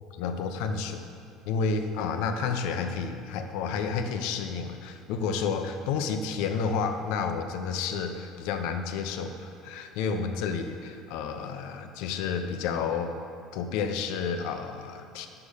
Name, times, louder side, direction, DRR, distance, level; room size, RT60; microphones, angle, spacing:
voice 1, 0.1-1.0 1.5-13.1 13.5-15.3, left 5 dB, 75° left, 7 dB, 0.8 m, -30 dB
9.7 x 6.8 x 6.6 m, 2.7 s
cardioid pair, 170°, 0 cm